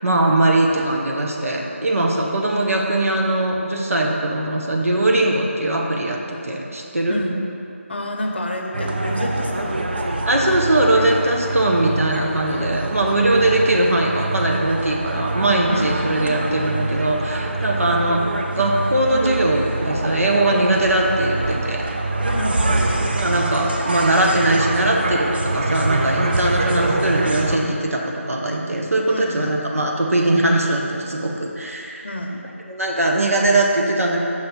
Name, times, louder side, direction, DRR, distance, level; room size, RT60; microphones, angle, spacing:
voice 1, 0.0-7.2 10.2-18.2 18.5-21.8 23.1-32.1 32.7-34.2, right 1 dB, 80° right, 0 dB, 0.9 m, -20 dB
voice 2, 7.1-7.4 7.9-10.0 15.7-16.0 22.3-22.9 29.1-29.7 32.0-32.5, left 1 dB, 50° left, 1 dB, 0.7 m, -29 dB
sound 1, 8.7-27.6, right 2 dB, 45° right, 0.5 m, -24 dB
6.0 x 3.3 x 5.6 m, 2.8 s
figure-of-eight pair, 170°, 8 cm